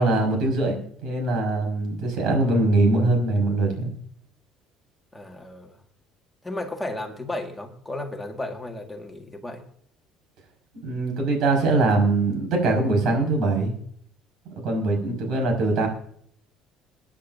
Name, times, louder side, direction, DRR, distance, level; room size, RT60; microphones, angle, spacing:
voice 1, 0.0-3.9 10.8-13.7 14.5-15.9, right 2 dB, 60° right, 3 dB, 5.3 m, -22 dB
voice 2, 5.1-5.7 6.4-9.6, left 1 dB, 5° left, 2 dB, 1.7 m, -34 dB
23.0 x 10.0 x 2.6 m, 0.66 s
cardioid pair, 160°, 0 cm